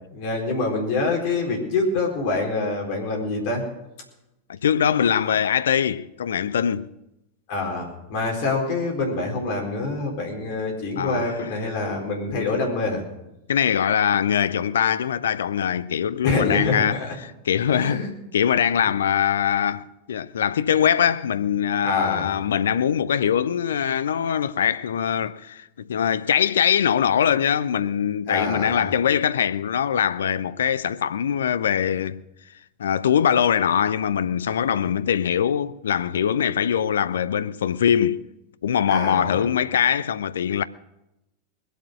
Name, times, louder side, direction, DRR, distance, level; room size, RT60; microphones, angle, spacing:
voice 1, 0.1-3.6 7.5-13.0 16.2-17.1 17.7-18.1 21.8-22.3 28.3-28.9 38.9-39.5, left 3 dB, 45° left, 4.2 m, -26 dB
voice 2, 4.5-6.9 11.0-11.4 12.3-12.5 13.5-18.1 18.3-32.2 32.8-38.3 38.6-40.6, left 8 dB, 65° left, 0.5 m, -22 dB
21.0 x 8.1 x 6.3 m
figure-of-eight pair, 90°, 0 cm